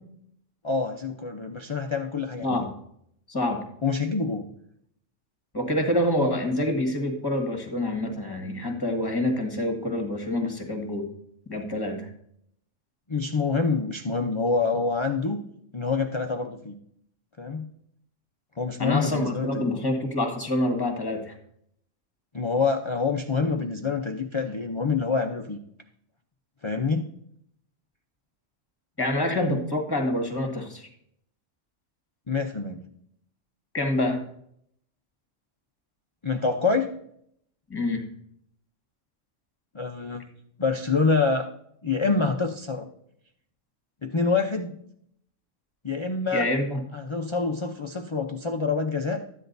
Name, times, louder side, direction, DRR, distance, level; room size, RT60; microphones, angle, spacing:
voice 1, 0.6-2.6 3.8-4.5 13.1-15.4 15.7-16.8 17.4-17.7 18.6-19.7 22.3-25.6 26.6-27.1 32.3-32.8 36.2-36.9 39.7-40.3 40.6-41.5 41.8-42.9 44.0-44.7 45.8-46.5 46.9-49.2, left 4 dB, 35° left, 4 dB, 0.5 m, -26 dB
voice 2, 3.3-3.6 5.5-11.1 11.5-12.1 18.8-21.3 29.0-30.9 33.7-34.2 37.7-38.0 46.3-46.8, left 1 dB, 20° left, 3 dB, 1.6 m, -26 dB
13.5 x 10.0 x 2.6 m, 0.70 s
omnidirectional pair, 1.3 m